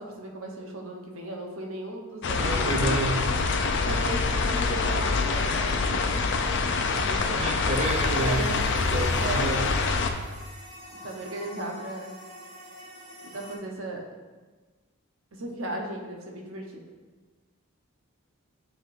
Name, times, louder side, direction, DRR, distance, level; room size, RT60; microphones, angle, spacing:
voice 1, 0.0-3.0 3.7-6.1 6.9-7.6 8.2-8.6 9.0-9.5 11.0-12.2 13.3-14.0 15.3-16.8, right 1 dB, 65° right, 1 dB, 0.9 m, -36 dB
sound 1, 2.2-10.1, left 4 dB, 55° left, 0.5 m, -25 dB
voice 2, 2.4-3.4 7.3-8.4 8.9-9.6, right 1 dB, 30° right, 0 dB, 0.4 m, -29 dB
sound 2, 7.7-13.6, equal, 85° right, 1.6 m, -44 dB
10.0 x 3.6 x 2.6 m, 1.3 s
head